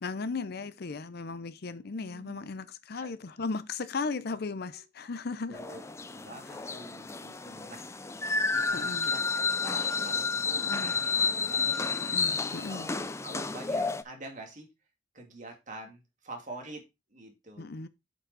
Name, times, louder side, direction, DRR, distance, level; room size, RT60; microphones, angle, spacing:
voice 1, 0.0-5.6 8.7-9.1 10.5-10.9 12.0-12.9 17.6-17.9, left 4 dB, 55° left, 0.6 m, -36 dB
voice 2, 2.0-2.5 2.9-3.1 4.3-4.4 4.7-4.8 5.5-8.2 8.5-11.9 12.6-14.7 15.1-16.8 17.1-17.7, right 2 dB, 45° right, 2.2 m, -46 dB
sound 1, 5.5-14.0, left 4 dB, 15° left, 0.4 m, -31 dB
7.8 x 5.2 x 4.0 m
head